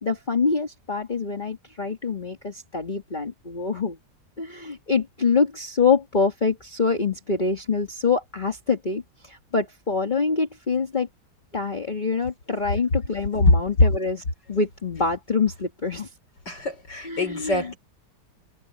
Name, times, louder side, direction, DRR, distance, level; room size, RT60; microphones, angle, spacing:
voice 1, 0.0-4.0 4.4-11.1 11.5-16.1 17.0-17.7, left 4 dB, 25° left, 2.1 m, -25 dB
voice 2, 16.5-17.8, left 2 dB, 85° left, 6.1 m, -29 dB
open air
omnidirectional pair, 1.8 m